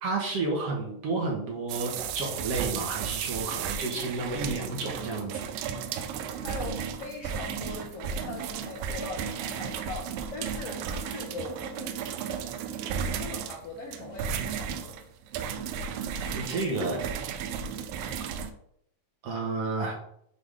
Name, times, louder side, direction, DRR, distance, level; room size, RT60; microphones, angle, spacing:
voice 1, 0.0-5.4 16.2-17.0 19.2-19.9, right 3 dB, 65° right, 0 dB, 1.6 m, -31 dB
sound 1, 1.7-18.5, right 7 dB, 85° right, 2.3 m, -34 dB
voice 2, 6.4-12.5 13.0-15.0, left 3 dB, 85° left, 0 dB, 1.3 m, -41 dB
7.4 x 3.5 x 4.8 m, 0.74 s
omnidirectional pair, 4.0 m